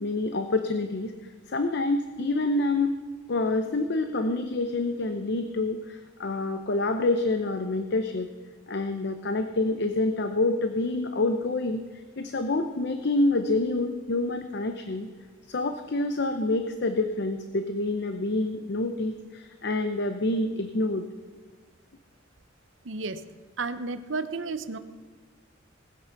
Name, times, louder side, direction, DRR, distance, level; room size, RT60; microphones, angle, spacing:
voice 1, 0.0-1.1 1.5-3.0 3.3-8.3 8.7-11.8 12.2-15.1 15.5-21.1, left 2 dB, 60° left, 7 dB, 0.7 m, -27 dB
voice 2, 22.8-23.2 23.6-24.8, right 3 dB, 70° right, 11 dB, 0.8 m, -32 dB
19.0 x 8.5 x 5.9 m, 1.4 s
head